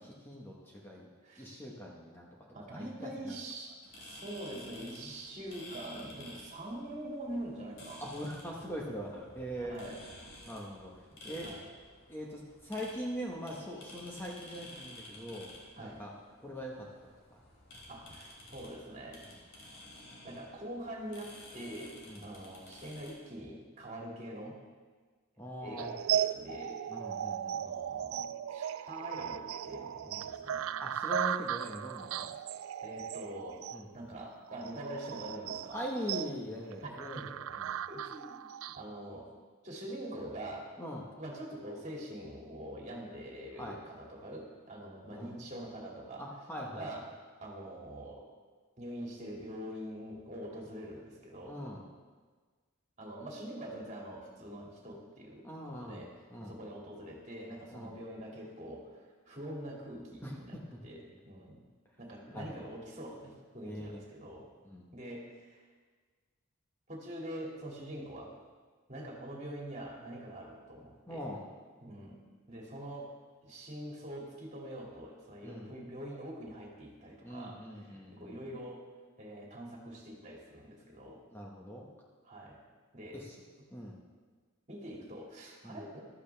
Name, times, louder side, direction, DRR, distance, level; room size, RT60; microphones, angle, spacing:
voice 1, 0.0-1.1 1.4-2.3 2.7-3.4 5.0-5.1 8.0-9.8 10.4-10.9 11.2-11.5 12.1-15.5 15.8-16.1 16.4-17.1 22.1-22.2 25.4-26.0 26.9-27.8 30.8-32.4 33.7-33.9 35.7-37.3 37.6-37.8 40.8-41.1 43.6-43.8 45.1-45.3 46.2-46.9 51.4-51.8 55.4-56.6 57.7-57.9 60.2-60.6 62.3-62.7 63.6-64.0 64.6-64.9 71.1-71.5 75.4-75.7 77.2-78.4 81.3-81.9 83.1-83.4 83.7-84.0 85.6-85.8, equal, 10° left, -3 dB, 1.4 m, -42 dB
voice 2, 2.5-8.0 9.7-10.0 11.4-11.7 15.8-16.0 17.9-19.2 20.2-24.6 25.6-26.8 27.5-30.9 32.8-33.6 33.9-35.8 36.8-37.3 37.9-38.5 38.8-39.3 39.6-40.7 41.2-46.3 46.7-47.1 47.4-48.2 48.8-51.6 53.0-56.1 56.4-61.6 62.0-64.5 64.9-65.6 66.9-68.3 68.9-71.3 71.8-72.2 72.5-73.1 73.4-78.9 79.2-81.2 82.2-82.6 82.9-83.2 84.7-86.0, right 1 dB, 35° right, -2 dB, 2.5 m, -44 dB
sound 1, 3.8-23.1, left 1 dB, 60° left, 3.6 m, -52 dB
sound 2, 25.8-38.8, right 9 dB, 75° right, 0.3 m, -37 dB
14.5 x 12.5 x 3.5 m, 1.5 s
head